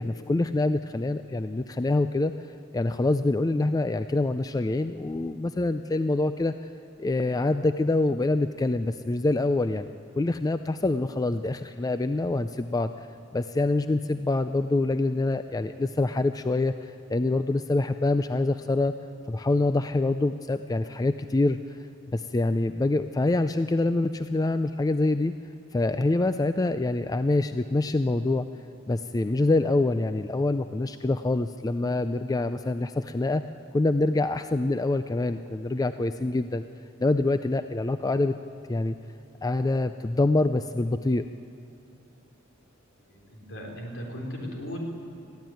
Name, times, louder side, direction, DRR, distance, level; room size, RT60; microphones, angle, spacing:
voice 1, 0.0-2.3 2.7-6.7 7.0-12.9 13.3-18.9 19.3-21.8 22.1-25.3 25.7-28.5 28.9-33.4 33.7-36.6 37.0-38.3 38.7-39.0 39.4-41.2, left 2 dB, 20° left, 10 dB, 0.4 m, -25 dB
voice 2, 43.1-44.8, equal, 70° left, 0 dB, 4.1 m, -37 dB
21.0 x 14.0 x 9.2 m, 2.6 s
head